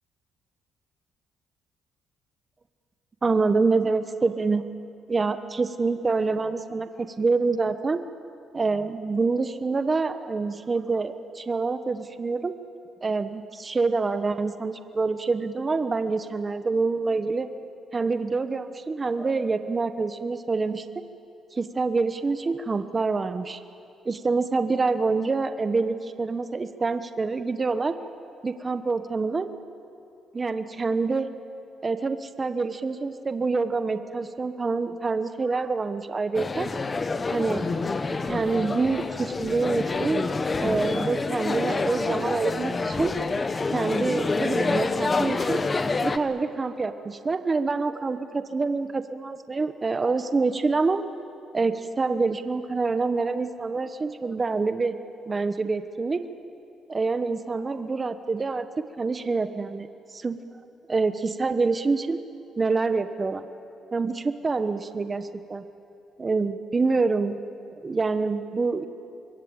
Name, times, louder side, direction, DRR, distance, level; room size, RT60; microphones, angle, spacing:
voice 1, 3.2-4.6 5.1-8.0 8.5-12.6 13.0-17.5 17.9-21.0 21.5-23.6 24.0-28.0 28.4-29.5 30.3-31.3 31.8-36.7 37.3-37.7 38.3-40.3 40.6-43.2 43.7-45.7 46.0-51.0 51.5-55.0 55.3-56.3 56.9-60.4 60.9-62.2 62.6-63.4 63.9-65.6 66.2-67.4 67.7-68.8, right 4 dB, 30° right, 10 dB, 1.1 m, -26 dB
sound 1, 36.3-46.2, left 3 dB, 30° left, 1.2 m, -27 dB
25.5 x 22.0 x 8.9 m, 2.6 s
cardioid pair, 90°, 0 cm